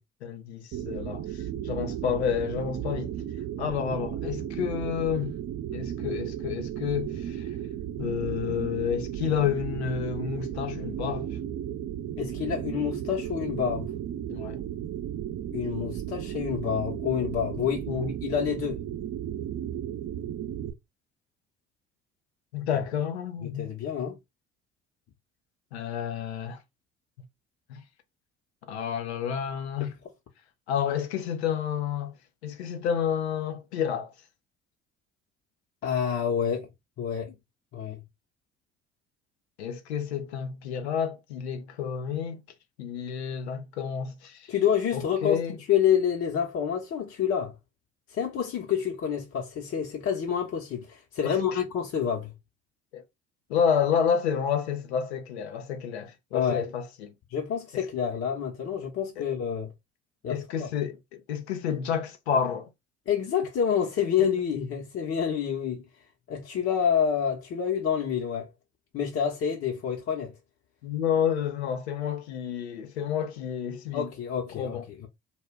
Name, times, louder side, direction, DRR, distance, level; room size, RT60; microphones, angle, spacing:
voice 1, 0.2-3.1 3.6-5.3 5.7-7.5 8.0-11.4 14.3-14.6 17.9-18.1 22.5-23.7 25.7-26.6 27.7-27.8 28.7-29.9 30.7-32.1 32.4-34.1 39.6-42.4 42.8-44.5 44.9-45.6 51.2-51.6 52.9-53.0 53.5-57.1 57.7-57.9 59.2-59.3 60.3-62.7 70.8-74.1 74.6-74.9, left 8 dB, 80° left, 0.6 m, -30 dB
sound 1, 0.7-20.7, right 10 dB, 50° right, 0.6 m, -34 dB
voice 2, 12.2-13.9 15.5-17.9 18.2-18.8 22.7-22.8 23.4-24.2 35.8-36.7 37.0-37.4 37.7-38.0 44.5-45.4 45.7-47.5 48.1-52.3 56.3-56.7 57.3-59.7 60.2-60.7 63.1-65.8 66.3-68.5 68.9-70.3 73.9-75.0, left 8 dB, 45° left, 0.7 m, -28 dB
2.1 x 2.1 x 3.4 m
figure-of-eight pair, 50°, 32 cm